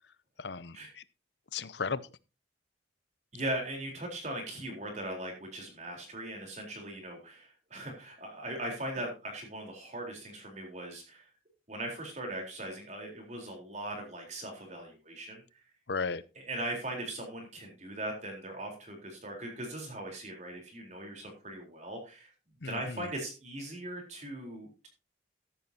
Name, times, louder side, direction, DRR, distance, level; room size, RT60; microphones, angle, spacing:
voice 1, 0.4-1.0 1.5-2.0 15.9-16.2 22.6-23.1, left 5 dB, 65° left, 17 dB, 0.7 m, -35 dB
voice 2, 3.3-11.3 11.7-15.6 16.5-22.3 22.6-24.9, right 1 dB, 40° right, 1 dB, 4.1 m, -39 dB
14.0 x 10.5 x 2.9 m, 0.30 s
head